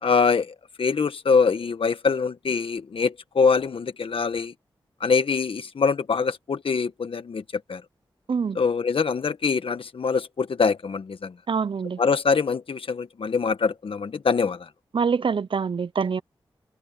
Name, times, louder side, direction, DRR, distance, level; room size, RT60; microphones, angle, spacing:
voice 1, 0.0-4.5 5.0-7.4 7.7-7.8 8.5-11.3 12.0-14.7, left 5 dB, 70° left, 1.5 m, -24 dB
voice 2, 11.5-12.0 14.9-16.2, right 5 dB, 60° right, 0.8 m, -25 dB
cardioid pair, 40°, 10 cm